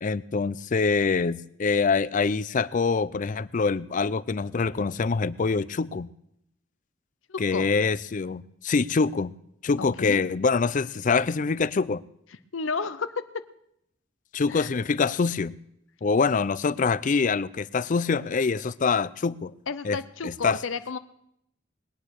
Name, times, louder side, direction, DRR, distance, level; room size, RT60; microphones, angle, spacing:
voice 1, 0.0-6.1 7.4-9.3 9.6-12.0 14.3-15.6 16.0-19.5 19.8-20.6, left 4 dB, 40° left, 19 dB, 0.5 m, -25 dB
voice 2, 7.3-7.7 10.0-10.2 12.5-13.4 14.5-14.7 19.7-21.0, left 4 dB, 80° left, 12 dB, 0.7 m, -32 dB
20.5 x 9.0 x 6.5 m, 0.76 s
head